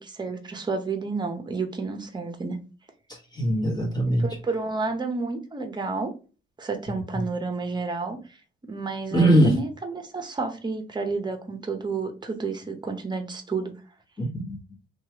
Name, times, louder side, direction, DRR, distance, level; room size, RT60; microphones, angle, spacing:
voice 1, 0.0-2.6 4.1-6.1 6.6-8.2 8.7-13.7, right 4 dB, 20° right, 5 dB, 0.8 m, -30 dB
voice 2, 3.1-4.3 6.9-7.2 9.1-9.6 14.2-14.6, right 1 dB, 20° left, -3 dB, 1.4 m, -22 dB
2.9 x 2.4 x 2.9 m, 0.34 s
cardioid pair, 90°, 20 cm